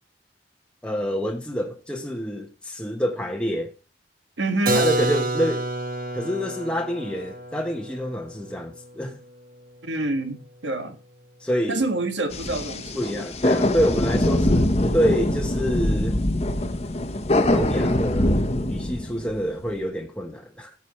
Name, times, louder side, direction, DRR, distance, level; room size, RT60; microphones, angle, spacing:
voice 1, 0.8-3.7 4.7-5.7 6.1-9.2 11.4-11.8 12.9-16.2 17.5-20.7, equal, 5° left, 1.1 m, -27 dB
voice 2, 4.4-4.8 9.8-11.0 11.7-13.0, right 2 dB, 80° right, 1.9 m, -27 dB
Keyboard (musical), 4.7-10.3, right 2 dB, 50° right, 1.3 m, -29 dB
sound 1, 12.3-19.5, left 1 dB, 35° left, 1.1 m, -23 dB
16.0 x 7.2 x 3.2 m
head